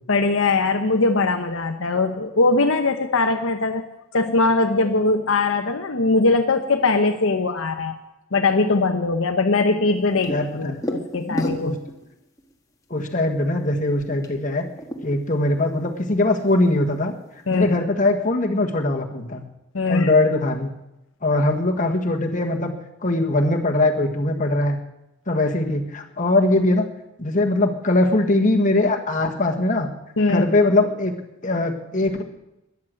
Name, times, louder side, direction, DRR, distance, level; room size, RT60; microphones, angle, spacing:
voice 1, 0.1-3.8 4.1-7.9 8.3-11.8 17.5-17.7 19.7-20.1 30.2-30.5, left 3 dB, 65° left, 5 dB, 0.9 m, -21 dB
sound 1, 9.9-12.1 12.4-12.5 13.0-13.4 13.8-15.5 15.7-16.7 17.0-17.1 17.4-17.8, equal, 15° left, 1.6 m, -33 dB
voice 2, 10.3-10.8 11.3-11.7 12.9-14.6 15.0-17.1 17.5-19.4 19.9-20.7 21.2-22.7 23.0-24.8 25.3-26.8 27.2-29.9 30.3-31.2 31.4-32.2, left 2 dB, 35° left, 3 dB, 1.6 m, -21 dB
13.5 x 10.5 x 7.6 m, 0.91 s
head